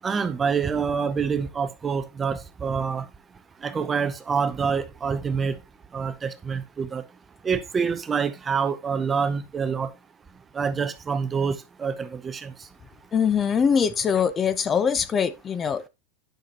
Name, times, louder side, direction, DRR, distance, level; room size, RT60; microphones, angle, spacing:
voice 1, 0.0-5.6 5.9-9.9 10.3-12.8, right 6 dB, 20° right, 0.7 m, -27 dB
voice 2, 13.1-15.9, left 7 dB, 25° left, 0.7 m, -23 dB
10.5 x 5.8 x 2.8 m
supercardioid pair, 125°, 0 cm